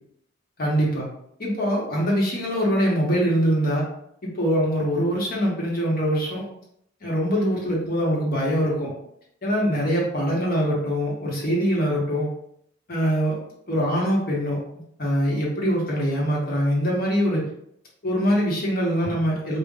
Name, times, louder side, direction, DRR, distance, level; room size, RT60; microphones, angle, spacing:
voice 1, 0.6-1.0 1.4-3.8 4.2-6.5 7.0-8.9 9.4-12.3 12.9-13.4 13.7-14.6 15.0-17.5 18.0-19.6, equal, 50° left, -4 dB, 1.2 m, -23 dB
5.4 x 2.4 x 2.4 m, 0.73 s
head